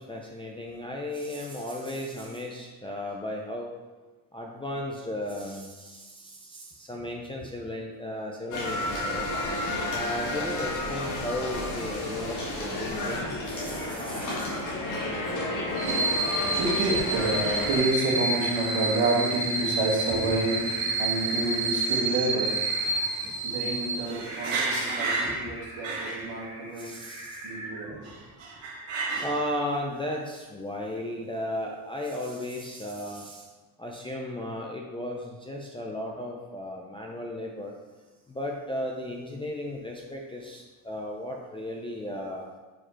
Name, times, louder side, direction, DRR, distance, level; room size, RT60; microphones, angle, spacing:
voice 1, 0.0-3.7 4.3-9.3 9.9-14.6 26.8-27.4 29.2-33.5 33.8-37.7 38.3-42.4, left 1 dB, 15° left, -2 dB, 0.3 m, -35 dB
sound 1, 8.5-17.8, left 2 dB, 40° left, 1.4 m, -31 dB
sound 2, 14.8-28.3, right 1 dB, 10° right, 1.1 m, -40 dB
voice 2, 15.7-27.0 27.4-29.4, right 2 dB, 70° right, -2 dB, 1.7 m, -27 dB
5.0 x 4.3 x 4.4 m, 1.2 s
cardioid pair, 130°, 47 cm